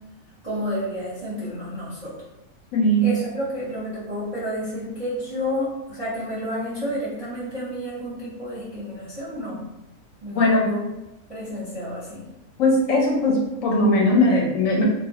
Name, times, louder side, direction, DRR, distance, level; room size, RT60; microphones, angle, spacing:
voice 1, 0.4-2.1 3.0-9.6 10.2-10.8 11.3-12.2, equal, 35° right, -10 dB, 0.6 m, -30 dB
voice 2, 2.7-3.2 10.3-10.7 12.6-14.9, left 1 dB, 70° left, -2 dB, 0.9 m, -19 dB
2.4 x 2.0 x 2.7 m, 0.96 s
omnidirectional pair, 1.5 m